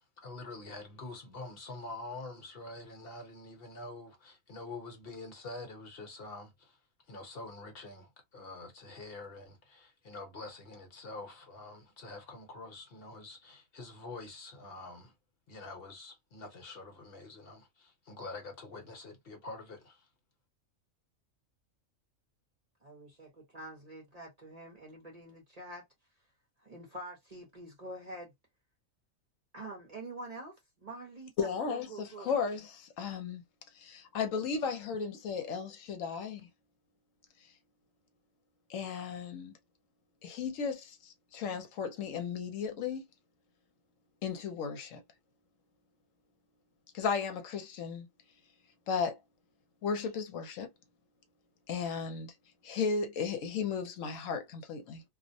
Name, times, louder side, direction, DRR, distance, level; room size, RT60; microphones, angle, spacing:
voice 1, 0.0-6.8 7.1-15.1 15.5-20.1, left 2 dB, 50° left, 1.0 m, -46 dB
voice 2, 22.8-25.9 26.6-28.3 29.5-32.3, right 1 dB, 35° right, 0.7 m, -46 dB
voice 3, 31.4-33.4 33.7-36.4 38.7-39.5 40.2-43.1 44.2-45.0 46.9-48.1 48.9-49.2 49.8-50.7 51.7-52.3 52.6-55.0, left 5 dB, 75° left, 1.0 m, -35 dB
2.4 x 2.0 x 2.6 m
omnidirectional pair, 1.4 m